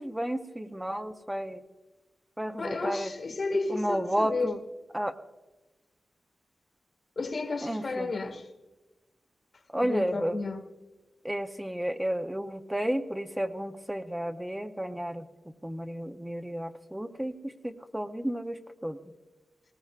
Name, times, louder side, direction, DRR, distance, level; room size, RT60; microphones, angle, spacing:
voice 1, 0.0-1.6 2.4-3.1 3.7-4.6 4.9-5.1 7.6-8.1 9.7-10.4 11.2-15.3 15.6-17.3 17.6-18.6 18.8-19.0, equal, 10° right, 0.8 m, -32 dB
voice 2, 2.6-4.5 7.2-8.5 9.8-10.7, left 3 dB, 60° left, 1.9 m, -32 dB
19.0 x 18.5 x 2.5 m
cardioid pair, 60°, 0 cm